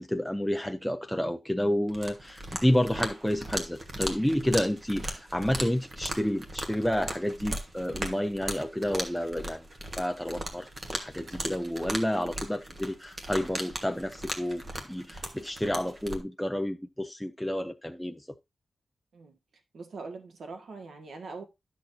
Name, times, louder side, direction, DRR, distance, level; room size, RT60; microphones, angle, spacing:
voice 1, 0.0-9.6 10.0-18.2, equal, 5° left, 0.5 m, -30 dB
sound 1, 1.9-16.2, right 1 dB, 30° right, 1.4 m, -38 dB
voice 2, 19.7-21.4, right 4 dB, 80° right, 1.6 m, -42 dB
11.5 x 6.2 x 2.6 m
wide cardioid pair, 165°, 0 cm